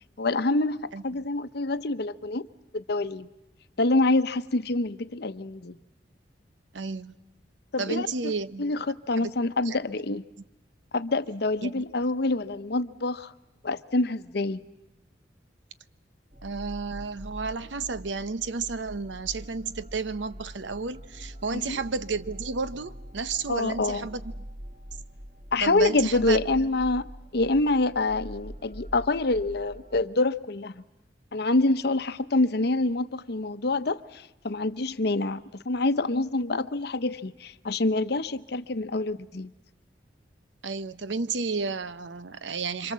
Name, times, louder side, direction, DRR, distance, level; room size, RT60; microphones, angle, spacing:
voice 1, 0.2-2.5 2.7-3.3 3.8-5.8 7.7-8.3 8.6-10.2 10.9-13.3 13.6-14.6 21.5-21.8 23.5-24.1 25.5-27.1 27.3-30.8 31.3-39.5, left 2 dB, 60° left, 0.8 m, -26 dB
voice 2, 6.7-7.1 7.8-8.7 9.2-9.3 9.6-9.8 11.6-11.9 16.4-24.2 25.6-26.4 40.6-42.9, right 4 dB, 90° right, 0.9 m, -32 dB
sound 1, 16.3-30.1, equal, 40° right, 1.5 m, -44 dB
27.5 x 25.5 x 7.5 m
head